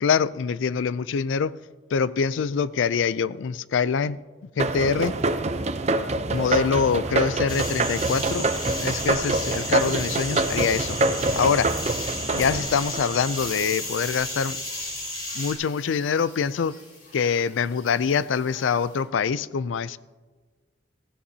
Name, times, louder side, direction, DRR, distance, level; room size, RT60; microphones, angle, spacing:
voice 1, 0.0-1.6 1.9-4.2 4.6-5.2 6.3-8.5 8.8-11.0 11.3-11.7 12.3-14.6 15.3-16.8 17.1-20.0, left 6 dB, 85° left, 0.4 m, -24 dB
sound 1, 4.6-13.7, right 2 dB, 35° right, 0.6 m, -26 dB
Forest at Night Ambience, 7.5-15.5, left 1 dB, 25° left, 3.7 m, -33 dB
sound 2, 10.2-19.0, left 2 dB, 50° left, 4.9 m, -43 dB
16.0 x 16.0 x 2.8 m
head